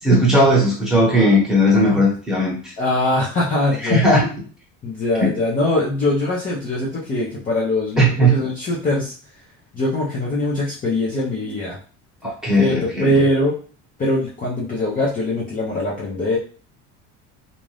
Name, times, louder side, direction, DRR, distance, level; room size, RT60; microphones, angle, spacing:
voice 1, 0.0-2.7 3.8-4.3 5.2-5.3 8.0-8.4 12.2-13.2, equal, ahead, -5 dB, 1.1 m, -17 dB
voice 2, 2.8-4.1 4.8-9.1 9.7-11.8 12.6-13.6 14.0-16.4, left 1 dB, 25° left, -5 dB, 0.6 m, -22 dB
2.6 x 2.4 x 3.3 m, 0.40 s
cardioid pair, 140°, 32 cm